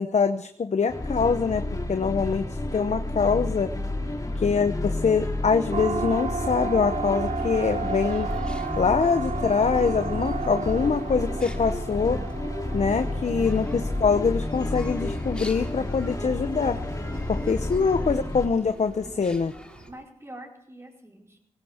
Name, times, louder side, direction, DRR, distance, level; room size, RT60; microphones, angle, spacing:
voice 1, 0.0-3.7 4.4-8.3 8.8-12.2 12.7-16.8 17.3-19.5, left 5 dB, 65° left, 9 dB, 0.8 m, -24 dB
sound 1, 0.9-18.5, left 1 dB, 30° left, 2.6 m, -31 dB
voice 2, 4.0-4.4 19.9-21.4, right 1 dB, 20° right, 0 dB, 4.8 m, -46 dB
Siren, 5.7-20.0, right 5 dB, 65° right, 0.8 m, -35 dB
sound 2, 6.9-19.9, equal, 5° left, 2.6 m, -44 dB
18.0 x 17.5 x 4.4 m, 0.77 s
cardioid pair, 60°, 13 cm